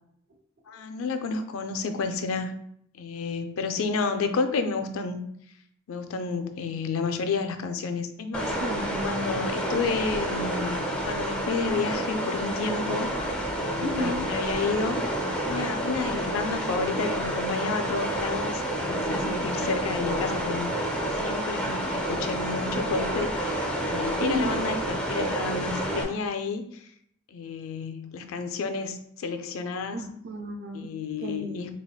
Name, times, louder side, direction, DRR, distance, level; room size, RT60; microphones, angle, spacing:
voice 1, 0.7-2.6 2.9-5.3 5.9-8.6 9.0-13.1 13.6-15.0 15.4-20.7 21.1-26.9 27.3-30.0 30.7-31.7, left 4 dB, 80° left, 7 dB, 0.4 m, -31 dB
sound 1, 8.3-26.0, right 1 dB, 5° left, 0.4 m, -29 dB
voice 2, 8.6-9.5 13.8-14.3 24.2-24.6 29.9-30.9 31.2-31.7, left 1 dB, 50° right, 4 dB, 0.5 m, -32 dB
3.4 x 3.2 x 2.3 m, 0.68 s
head